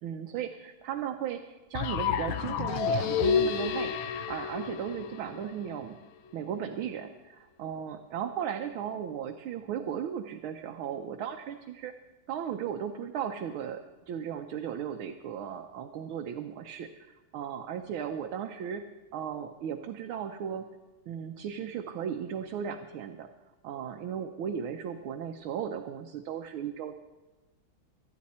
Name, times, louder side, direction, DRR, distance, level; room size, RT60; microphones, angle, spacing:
voice 1, 0.0-6.0 6.3-11.9 12.3-20.6 21.1-23.3 23.6-27.0, right 8 dB, 85° right, 4 dB, 1.6 m, -36 dB
sound 1, 1.7-5.7, left 7 dB, 85° left, 1.6 m, -29 dB
24.5 x 9.6 x 4.2 m, 1.2 s
omnidirectional pair, 2.2 m